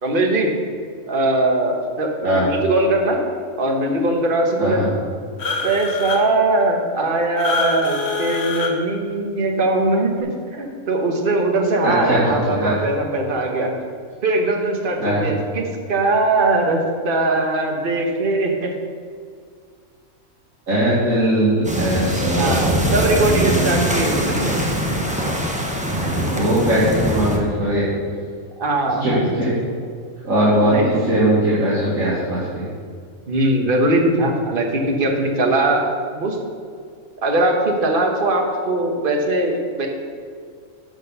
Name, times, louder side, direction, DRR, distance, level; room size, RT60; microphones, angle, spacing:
voice 1, 0.0-0.5 1.1-3.2 3.6-4.8 5.6-13.8 14.2-18.7 22.4-24.5 26.0-26.2 28.6-29.4 30.6-30.9 33.3-35.9 36.1-36.4 37.2-39.9, right 2 dB, 40° right, 2 dB, 1.4 m, -20 dB
voice 2, 4.6-4.9 11.8-12.2 12.5-12.7 15.0-15.3 20.7-23.8 24.2-24.5 25.9-27.9 29.0-29.1 29.4-29.5 30.2-32.6, right 1 dB, 75° right, -10 dB, 2.5 m, -20 dB
sound 1, 5.4-6.2 7.4-8.7, left 4 dB, 55° left, 1.3 m, -25 dB
sound 2, 21.6-27.4, equal, 5° right, 0.8 m, -23 dB
11.5 x 4.5 x 6.8 m, 2.1 s
omnidirectional pair, 1.4 m